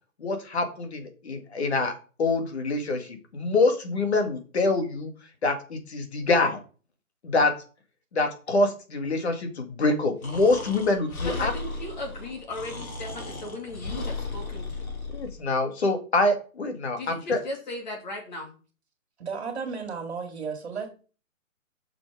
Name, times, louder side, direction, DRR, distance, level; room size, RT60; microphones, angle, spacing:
voice 1, 0.2-5.1 5.4-6.6 7.2-7.5 8.1-11.5 15.1-17.4, left 2 dB, 50° left, 6 dB, 2.0 m, -25 dB
Breathing, 10.2-15.3, left 3 dB, 80° left, 3.2 m, -35 dB
voice 2, 11.2-14.9 17.0-18.5, left 1 dB, 30° left, 1 dB, 2.5 m, -37 dB
voice 3, 19.2-20.9, right 5 dB, 50° right, 5 dB, 2.2 m, -33 dB
8.5 x 6.2 x 4.7 m, 0.37 s
hypercardioid pair, 170°, 42 cm